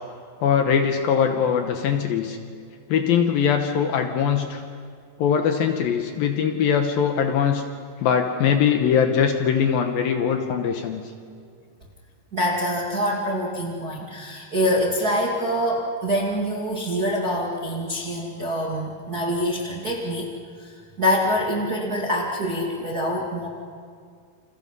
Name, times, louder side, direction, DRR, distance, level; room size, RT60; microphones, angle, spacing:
voice 1, 0.4-2.4 2.9-4.6 5.2-7.6 8.0-11.0, left 7 dB, 70° left, 5 dB, 2.5 m, -21 dB
voice 2, 12.3-20.3 20.6-23.5, equal, 30° right, -3 dB, 1.8 m, -25 dB
29.0 x 27.5 x 5.4 m, 2.1 s
omnidirectional pair, 5.0 m